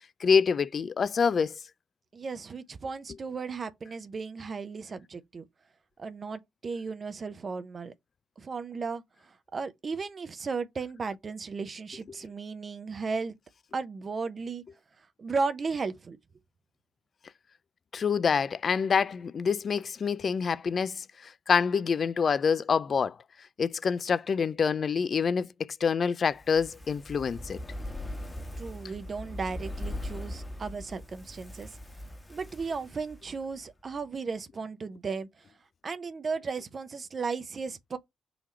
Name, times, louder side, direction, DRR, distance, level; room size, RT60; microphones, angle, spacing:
voice 1, 0.2-1.5 17.9-23.2 23.6-27.6, left 6 dB, 50° left, 0.3 m, -26 dB
voice 2, 2.1-5.4 6.0-7.9 8.4-13.4 13.7-14.6 15.2-16.2 28.6-31.7 32.3-35.4 35.8-38.0, right 4 dB, 45° right, 0.7 m, -35 dB
Fire, 26.3-33.7 34.0-34.1, left 1 dB, 20° left, 1.2 m, -40 dB
4.0 x 2.9 x 4.3 m
hypercardioid pair, 45°, 0 cm